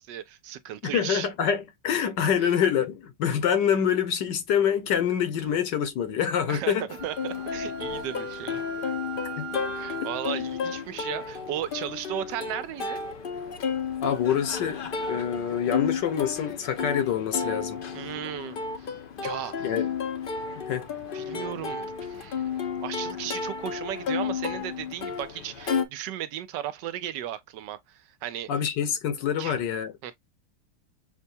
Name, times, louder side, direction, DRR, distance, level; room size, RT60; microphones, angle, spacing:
voice 1, 0.0-1.3 2.4-2.5 6.5-8.6 9.7-13.0 17.9-18.9 19.2-19.7 21.1-22.5 22.8-28.5 29.4-29.6 30.0-30.2, right 11 dB, 85° right, 1.3 m, -35 dB
voice 2, 0.8-6.9 9.4-9.5 14.0-14.8 15.1-17.8 19.6-19.9 20.7-20.9 28.5-29.9, left 8 dB, 85° left, 1.6 m, -26 dB
Plucked string instrument, 6.9-25.8, left 6 dB, 55° left, 0.5 m, -32 dB
Wind instrument woodwind instrument, 7.0-10.3, right 11 dB, 65° right, 1.3 m, -40 dB
6.8 x 2.3 x 2.6 m
omnidirectional pair, 1.8 m